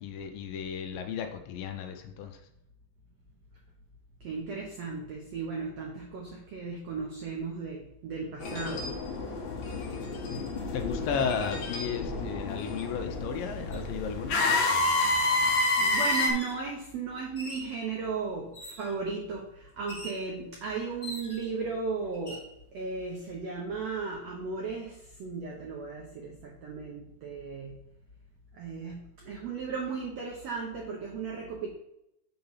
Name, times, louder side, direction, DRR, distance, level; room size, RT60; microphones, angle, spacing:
voice 1, 0.0-2.4 10.7-14.4, left 6 dB, 80° left, 5 dB, 2.1 m, -34 dB
voice 2, 4.2-8.9 15.3-22.4 22.7-27.8 28.5-31.7, right 4 dB, 80° right, -1 dB, 1.4 m, -36 dB
sound 1, 8.4-16.3, left 2 dB, 60° left, 2.2 m, -29 dB
sound 2, 13.7-13.8 14.6-15.1 16.1-16.6 17.3-17.8 18.5-19.0 19.9-20.2 21.0-21.6 22.1-22.5, left 1 dB, 15° left, 2.2 m, -43 dB
6.8 x 3.8 x 5.6 m, 0.83 s
omnidirectional pair, 4.5 m